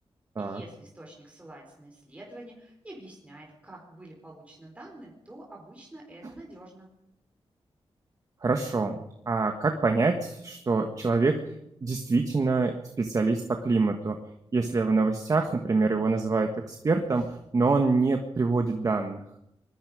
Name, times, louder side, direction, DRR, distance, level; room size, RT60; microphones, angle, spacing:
voice 1, 0.4-6.9, right 1 dB, 15° right, -1 dB, 4.3 m, -47 dB
voice 2, 8.4-9.0 9.3-11.4 11.8-14.2 14.5-19.2, right 3 dB, 35° right, 4 dB, 1.6 m, -25 dB
25.0 x 21.5 x 5.1 m, 0.81 s
wide cardioid pair, 150°, 10 cm